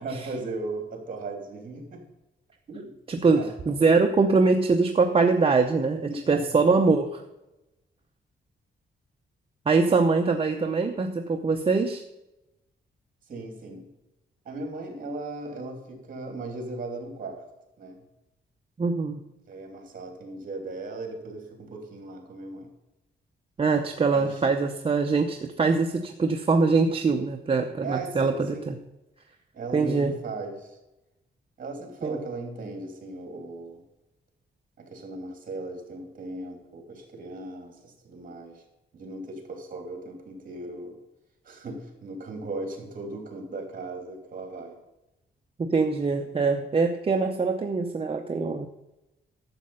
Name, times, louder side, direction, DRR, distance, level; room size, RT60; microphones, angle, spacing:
voice 1, 0.0-2.0 2.7-2.9 3.4-3.5 6.0-6.6 13.3-13.9 14.4-17.4 17.8-18.0 19.5-22.7 24.1-24.4 27.8-28.8 29.5-30.8 31.6-33.8 34.8-38.6 38.9-41.0 41.4-44.8, right 2 dB, 45° right, 3 dB, 3.0 m, -37 dB
voice 2, 3.1-7.2 9.7-12.0 18.8-19.2 23.6-28.8 29.7-30.2 32.0-32.2 45.6-48.7, right 4 dB, 30° right, 4 dB, 0.7 m, -23 dB
12.0 x 7.5 x 5.5 m, 0.95 s
wide cardioid pair, 150°, 19 cm